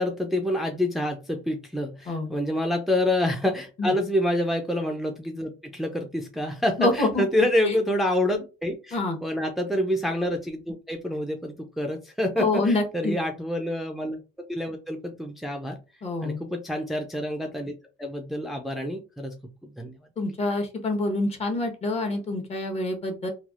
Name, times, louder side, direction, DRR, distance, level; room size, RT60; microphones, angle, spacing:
voice 1, 0.0-14.2 14.5-15.8 16.2-17.7 18.0-19.3 19.6-20.0, left 1 dB, ahead, 2 dB, 0.4 m, -27 dB
voice 2, 6.8-7.2 7.7-7.8 8.9-9.2 12.4-13.1 16.0-16.4 20.2-23.3, left 2 dB, 40° left, 3 dB, 1.0 m, -26 dB
3.2 x 2.3 x 2.4 m, 0.31 s
cardioid pair, 110°, 17 cm